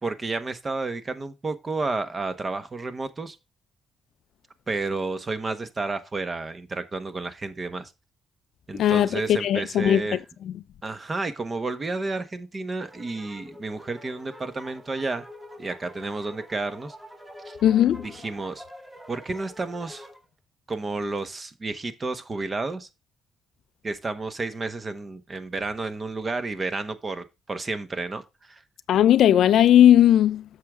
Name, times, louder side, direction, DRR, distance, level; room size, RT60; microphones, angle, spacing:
voice 1, 0.0-3.4 4.7-7.9 8.7-10.2 10.8-15.3 15.6-16.9 17.4-17.6 18.0-18.6 19.1-20.1 20.7-22.9 23.8-28.6, right 3 dB, 30° right, 1.2 m, -31 dB
voice 2, 8.7-10.2 10.4-10.5 17.6-18.1 28.9-30.4, left 11 dB, 75° left, 0.4 m, -18 dB
sound 1, 12.8-20.2, left 1 dB, 15° right, 2.3 m, -46 dB
8.5 x 6.5 x 3.6 m
cardioid pair, 90°, 0 cm